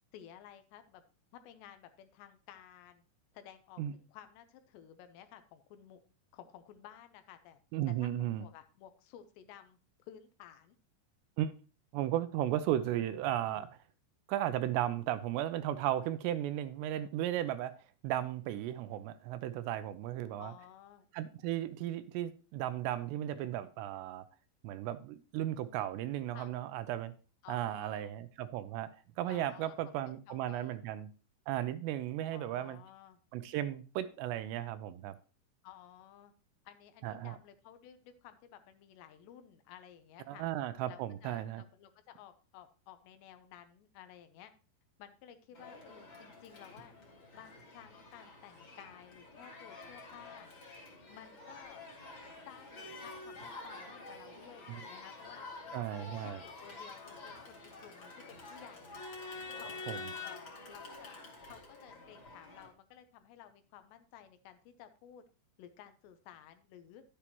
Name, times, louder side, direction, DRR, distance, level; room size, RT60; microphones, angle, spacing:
voice 1, 0.1-1.0 1.3-3.0 3.3-6.0 6.3-7.6 7.9-10.8 20.4-21.1 26.3-26.7 27.4-28.1 29.3-29.7 30.0-30.8 32.3-33.2 35.6-36.3 36.7-40.5 40.9-44.5 45.0-47.0 47.3-50.5 51.1-51.8 52.5-55.5 56.2-58.9 59.6-59.9 60.2-61.2 61.5-65.2 65.6-67.0, left 10 dB, 80° left, 2.9 m, -55 dB
voice 2, 7.7-8.4 11.4-11.5 11.9-13.7 14.3-17.7 18.0-20.5 21.1-24.3 24.6-27.1 27.5-31.1 31.5-32.8 33.3-35.2 37.0-37.4 40.3-41.6 54.7-54.8 55.7-56.4 59.9-60.0, right 12 dB, 85° right, 2.6 m, -35 dB
Crowd, 45.5-62.7, left 3 dB, 35° left, 2.0 m, -48 dB
11.0 x 8.4 x 2.9 m
omnidirectional pair, 5.1 m